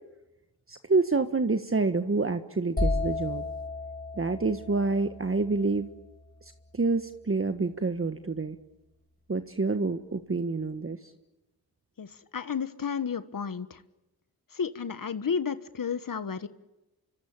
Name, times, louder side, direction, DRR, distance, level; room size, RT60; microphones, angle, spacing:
voice 1, 0.7-3.4 4.2-5.9 6.7-8.6 9.3-11.0, right 3 dB, 35° right, 8 dB, 1.5 m, -27 dB
sound 1, 2.8-6.6, left 3 dB, 20° left, 4.5 m, -33 dB
voice 2, 12.0-13.8 14.5-16.5, left 6 dB, 55° left, 12 dB, 1.4 m, -32 dB
27.0 x 24.5 x 8.9 m, 1.0 s
cardioid pair, 55°, 39 cm